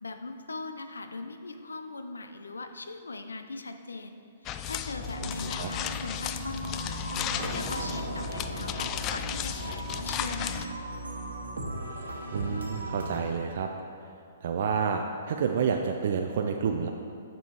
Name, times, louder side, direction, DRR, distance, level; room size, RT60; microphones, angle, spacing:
voice 1, 0.0-7.1 7.5-10.8, left 3 dB, 85° left, 8 dB, 0.5 m, -40 dB
sound 1, 4.5-10.7, left 10 dB, 30° left, 0.3 m, -35 dB
sound 2, 4.9-13.2, right 1 dB, 80° right, 1.1 m, -37 dB
voice 2, 12.3-13.7 14.4-16.9, right 6 dB, 55° right, 3 dB, 0.4 m, -29 dB
7.0 x 5.5 x 4.7 m, 2.5 s
figure-of-eight pair, 120°, 0 cm